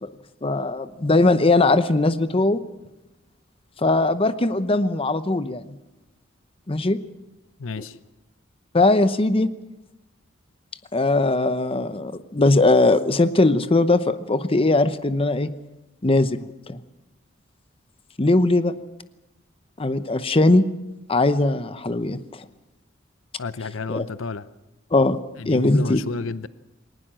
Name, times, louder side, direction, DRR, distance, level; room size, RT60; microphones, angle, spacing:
voice 1, 0.4-2.6 3.8-5.6 6.7-7.0 7.8-7.9 8.7-9.5 10.9-15.5 16.0-16.8 18.2-18.7 19.8-20.6 21.1-22.4 23.9-24.1 24.9-25.2 25.4-26.0, left 2 dB, 30° left, 12 dB, 0.8 m, -20 dB
voice 2, 7.6-8.0 23.4-24.5 25.4-26.5, left 4 dB, 80° left, 15 dB, 0.7 m, -31 dB
20.5 x 19.0 x 7.5 m, 0.97 s
head